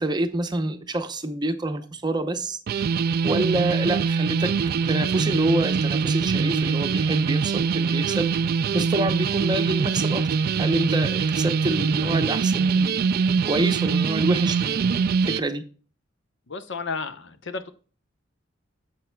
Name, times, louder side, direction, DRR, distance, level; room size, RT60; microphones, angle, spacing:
voice 1, 0.0-2.6 3.2-4.5 4.9-8.3 8.7-10.3 10.6-13.0 13.4-15.0 15.3-15.6, right 2 dB, 20° right, 0.7 m, -27 dB
sound 1, 2.7-15.4, right 5 dB, 50° right, 0.3 m, -23 dB
voice 2, 16.5-17.7, left 4 dB, 65° left, 0.9 m, -32 dB
10.5 x 7.5 x 2.2 m
head